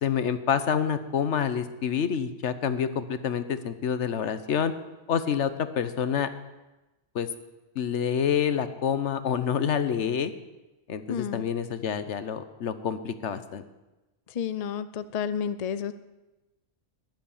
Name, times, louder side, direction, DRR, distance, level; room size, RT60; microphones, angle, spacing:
voice 1, 0.0-4.7 5.1-6.3 7.1-7.3 7.7-10.3 10.9-13.6, left 8 dB, 80° left, 12 dB, 1.2 m, -27 dB
voice 2, 11.1-11.4 14.3-15.9, left 8 dB, 45° left, 14 dB, 0.6 m, -30 dB
13.5 x 11.0 x 7.2 m, 1.1 s
omnidirectional pair, 1.2 m